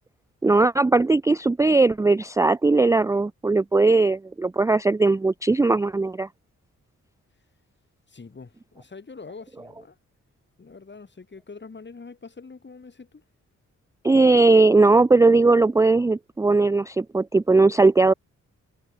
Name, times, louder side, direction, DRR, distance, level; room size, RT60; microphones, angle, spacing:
voice 1, 0.4-6.3 14.0-18.1, right 3 dB, 10° right, 0.3 m, -19 dB
voice 2, 8.1-10.0 10.6-13.2, left 4 dB, 35° left, 2.3 m, -44 dB
cardioid pair, 60°, 31 cm